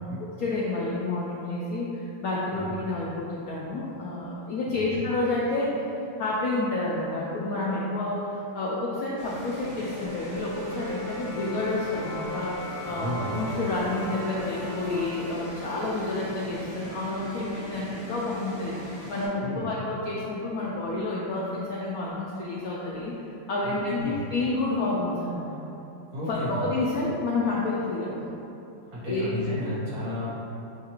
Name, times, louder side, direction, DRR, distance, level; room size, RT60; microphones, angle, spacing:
voice 1, 0.0-23.1 23.5-25.5 26.3-28.3 29.1-29.4, left 2 dB, 75° left, -5 dB, 0.8 m, -29 dB
voice 2, 4.7-5.0 12.9-13.4 19.4-19.6 23.6-24.2 26.1-26.6 28.9-30.3, left 1 dB, 60° right, -9 dB, 1.7 m, -33 dB
sound 1, 9.2-19.3, equal, 75° right, 2.3 m, -41 dB
sound 2, 9.5-15.0, equal, 10° right, 1.0 m, -37 dB
7.2 x 2.4 x 2.9 m, 2.8 s
omnidirectional pair, 2.0 m